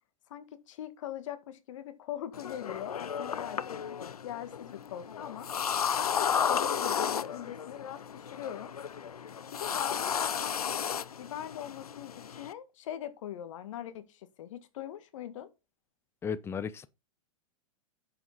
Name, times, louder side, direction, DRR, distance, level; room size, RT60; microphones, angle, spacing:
voice 1, 0.3-3.8 4.2-5.5 5.9-8.7 9.5-10.8 11.2-15.5, left 11 dB, 60° left, 2.0 m, -41 dB
sound 1, 2.3-12.5, left 7 dB, 90° left, 0.6 m, -33 dB
voice 2, 16.2-16.9, left 6 dB, 15° left, 0.6 m, -34 dB
9.5 x 7.6 x 4.1 m
hypercardioid pair, 120°, 18 cm